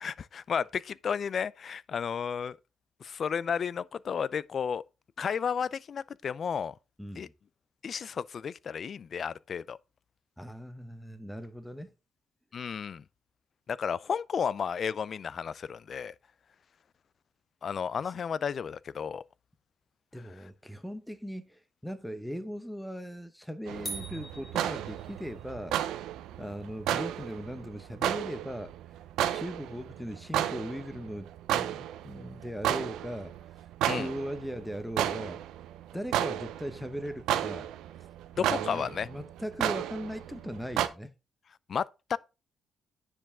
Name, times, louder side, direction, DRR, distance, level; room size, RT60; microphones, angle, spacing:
voice 1, 0.0-2.6 3.0-4.8 5.2-6.7 7.2-7.3 7.8-9.8 12.5-13.0 13.7-16.1 17.6-19.2 33.9-34.1 38.4-39.1 41.7-42.2, left 7 dB, 50° left, 0.4 m, -32 dB
voice 2, 7.0-7.3 10.4-11.9 18.0-18.1 20.1-25.8 26.4-28.7 29.3-33.3 33.9-35.4 35.9-37.7 38.4-41.1, equal, 5° left, 0.9 m, -39 dB
sound 1, 23.7-40.9, right 11 dB, 90° right, 0.7 m, -33 dB
sound 2, 23.9-25.4, right 1 dB, 20° left, 3.6 m, -42 dB
9.8 x 4.8 x 3.6 m
cardioid pair, 90°, 0 cm